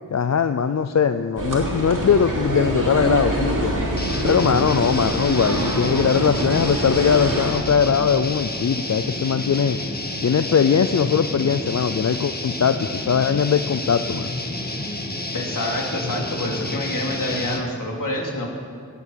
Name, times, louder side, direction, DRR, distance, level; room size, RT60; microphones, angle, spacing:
voice 1, 0.1-3.9 4.2-9.8 10.2-14.3, left 7 dB, 50° left, 10 dB, 0.5 m, -20 dB
sound 1, 1.4-7.5, right 1 dB, 65° right, 3.2 m, -25 dB
sound 2, 4.0-17.7, left 1 dB, 25° left, 1.7 m, -30 dB
voice 2, 15.3-18.5, left 1 dB, 65° left, -1 dB, 3.2 m, -27 dB
17.0 x 8.2 x 7.6 m, 2.3 s
cardioid pair, 55°, 34 cm